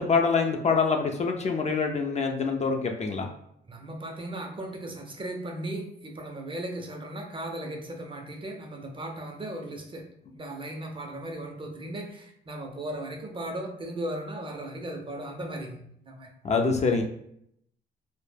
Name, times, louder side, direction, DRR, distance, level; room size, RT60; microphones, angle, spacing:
voice 1, 0.0-3.3 16.4-17.0, left 4 dB, 35° left, 3 dB, 0.4 m, -25 dB
voice 2, 3.7-10.0 10.3-16.3, right 1 dB, 25° right, 3 dB, 0.5 m, -37 dB
2.1 x 2.0 x 3.2 m, 0.71 s
cardioid pair, 90°, 20 cm